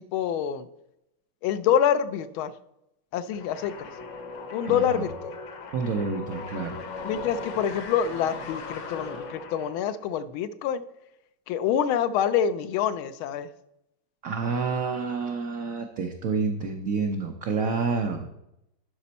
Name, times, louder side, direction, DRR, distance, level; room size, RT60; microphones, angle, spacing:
voice 1, 0.1-0.7 1.4-2.5 3.1-3.7 4.5-5.3 7.0-10.8 11.5-13.5, left 8 dB, 80° left, 13 dB, 1.4 m, -26 dB
sound 1, 3.3-10.1, left 4 dB, 60° left, 1.6 m, -38 dB
voice 2, 4.6-5.0 5.7-6.8 14.2-18.3, right 4 dB, 85° right, 5 dB, 0.7 m, -28 dB
11.0 x 5.2 x 4.1 m, 0.84 s
omnidirectional pair, 2.4 m